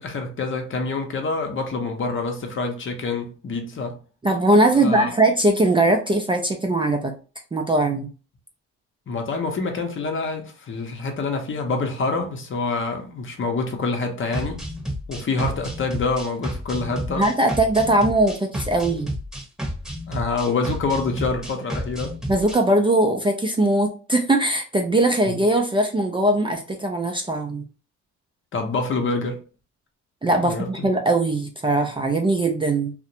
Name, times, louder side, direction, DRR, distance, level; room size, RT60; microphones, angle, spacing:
voice 1, 0.0-4.0 4.7-5.1 9.1-14.6 15.1-17.3 20.1-22.2 25.3-25.4 28.5-29.4 30.4-30.9, left 3 dB, 40° left, 0.7 m, -26 dB
voice 2, 4.2-7.1 7.5-8.1 17.2-19.1 22.3-27.6 30.2-32.9, right 2 dB, 15° right, 0.4 m, -20 dB
sound 1, 14.3-22.6, equal, ahead, 0.8 m, -31 dB
2.4 x 2.1 x 2.7 m
cardioid pair, 90°, 30 cm